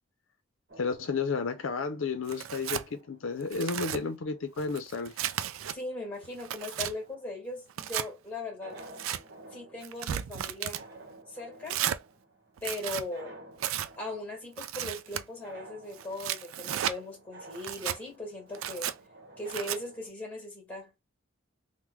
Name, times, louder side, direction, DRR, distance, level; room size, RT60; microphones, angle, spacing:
sound 1, 0.7-20.1, right 2 dB, 50° right, 1.1 m, -53 dB
voice 1, 0.8-5.2, left 4 dB, 75° left, 0.5 m, -32 dB
Tearing, 2.3-2.9 3.4-4.0 4.6-5.8 6.2-6.9 7.7-8.1 8.8-9.2 9.8-10.8 11.7-12.0 12.6-13.1 13.6-13.9 14.6-15.2 16.0-17.0 17.5-18.0 18.5-18.9 19.5-19.8, right 10 dB, 85° right, 0.3 m, -34 dB
voice 2, 5.7-8.8 9.5-10.9 11.3-11.8 12.6-13.4 14.0-18.9 19.4-20.9, left 2 dB, 10° left, 1.5 m, -39 dB
3.0 x 2.1 x 3.5 m
head